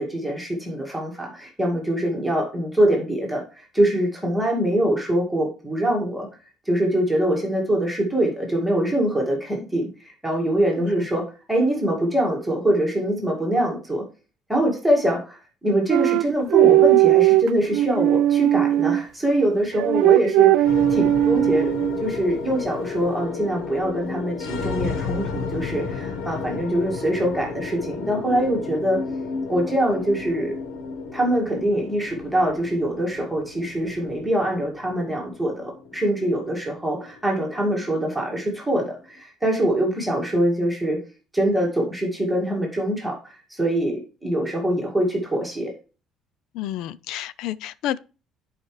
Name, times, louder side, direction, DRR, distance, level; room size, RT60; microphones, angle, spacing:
voice 1, 0.0-6.3 6.7-14.0 14.5-21.7 22.0-29.0 29.5-30.5 31.1-41.0 41.3-45.7, right 1 dB, ahead, 2.0 m, -24 dB
sound 1, 15.9-19.0 19.8-22.0, right 14 dB, 70° right, 0.3 m, -18 dB
sound 2, 20.6-39.0, left 5 dB, 90° left, 1.2 m, -33 dB
voice 2, 46.5-48.0, left 12 dB, 65° left, 0.4 m, -30 dB
11.0 x 4.9 x 3.1 m
cardioid pair, 170°, 0 cm